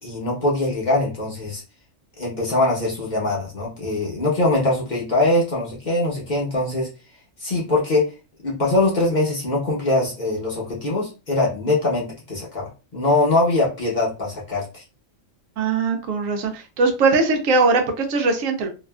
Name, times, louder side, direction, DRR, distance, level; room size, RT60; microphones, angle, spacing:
voice 1, 0.0-1.6 2.2-6.9 7.4-8.1 8.4-14.8, left 2 dB, 40° left, -4 dB, 0.9 m, -22 dB
voice 2, 15.6-18.7, right 3 dB, 80° right, 5 dB, 1.0 m, -20 dB
2.7 x 2.4 x 2.2 m, 0.31 s
omnidirectional pair, 1.4 m